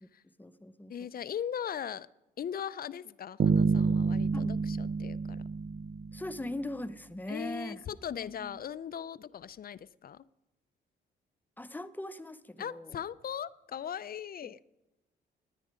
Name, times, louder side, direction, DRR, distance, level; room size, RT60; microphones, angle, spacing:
voice 1, 0.0-1.1 4.3-4.5 6.1-7.8 8.1-8.6 11.6-13.0 14.4-14.5, left 1 dB, 10° left, 12 dB, 0.8 m, -41 dB
voice 2, 0.9-2.1 2.4-5.4 7.3-10.2 12.6-14.6, left 9 dB, 50° left, 18 dB, 0.5 m, -39 dB
sound 1, 3.4-6.4, right 5 dB, 55° right, 0.8 m, -28 dB
18.5 x 9.9 x 5.0 m, 0.98 s
cardioid pair, 75°, 20 cm